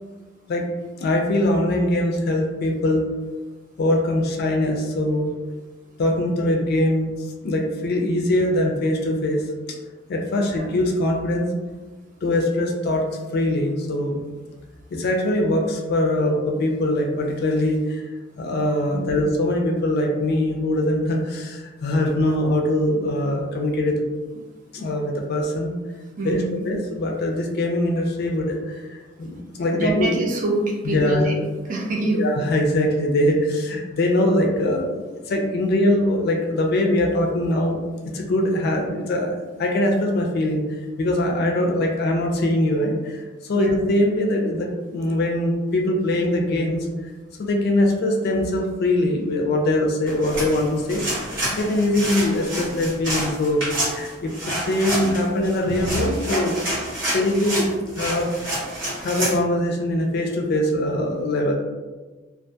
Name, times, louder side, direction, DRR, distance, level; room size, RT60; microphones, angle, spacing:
voice 1, 1.0-3.1 3.8-5.3 6.0-7.1 7.4-9.4 10.1-11.5 12.2-13.1 13.3-14.2 14.9-24.0 24.3-24.4 24.7-25.7 26.2-30.1 30.8-31.3 32.1-43.2 43.5-47.1 47.4-51.0 51.5-56.7 57.1-58.3 59.0-61.5, left 1 dB, 55° left, 1 dB, 0.4 m, -22 dB
voice 2, 10.4-10.7 18.9-19.2 22.0-22.4 26.2-26.7 29.7-32.3 43.5-43.7, right 1 dB, 45° right, 0 dB, 0.4 m, -26 dB
sound 1, 50.1-59.4, right 1 dB, 70° right, 1.0 m, -28 dB
2.3 x 2.2 x 2.6 m, 1.3 s
head